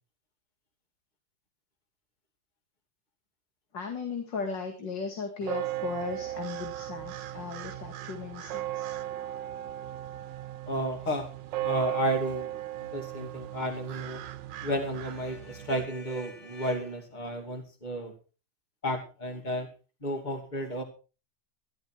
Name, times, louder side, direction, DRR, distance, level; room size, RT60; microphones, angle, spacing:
voice 1, 3.7-8.9, left 5 dB, 80° left, 4 dB, 2.7 m, -36 dB
sound 1, 5.4-15.9, right 14 dB, 80° right, 1.5 m, -37 dB
voice 2, 10.7-11.3 11.6-14.2 14.6-18.1 18.8-19.7 20.0-20.8, equal, 25° left, 4 dB, 2.8 m, -32 dB
15.0 x 12.5 x 4.6 m, 0.34 s
omnidirectional pair, 1.9 m